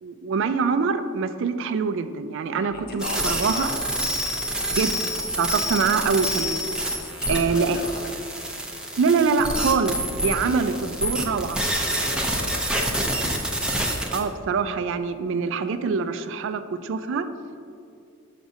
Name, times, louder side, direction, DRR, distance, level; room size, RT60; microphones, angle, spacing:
voice 1, 0.0-3.7 4.8-6.6 7.3-7.8 9.0-11.6 14.1-17.3, right 5 dB, 65° right, 11 dB, 0.3 m, -24 dB
voice 2, 2.6-3.8 6.9-8.2 10.2-10.8 12.0-13.1, left 2 dB, 50° left, 3 dB, 0.7 m, -38 dB
sound 1, 3.0-14.2, equal, 5° right, 0.5 m, -27 dB
6.3 x 5.9 x 2.7 m, 2.4 s
head